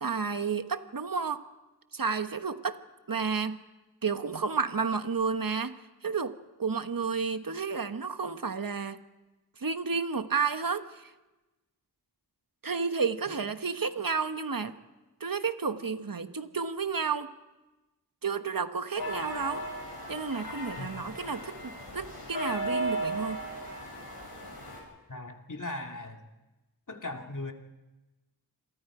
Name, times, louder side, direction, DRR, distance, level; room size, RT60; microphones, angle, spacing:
voice 1, 0.0-1.4 1.9-2.8 3.1-3.6 4.0-5.8 6.0-9.0 9.6-11.1 12.6-14.8 15.2-17.3 18.2-19.6 20.1-23.4, right 5 dB, 60° right, 10 dB, 1.2 m, -31 dB
sound 1, 19.0-24.8, right 1 dB, 75° left, 6.6 m, -36 dB
voice 2, 25.1-26.2 26.9-27.5, left 2 dB, 55° left, 3 dB, 2.3 m, -38 dB
28.0 x 23.0 x 4.9 m, 1.1 s
wide cardioid pair, 45°, 38 cm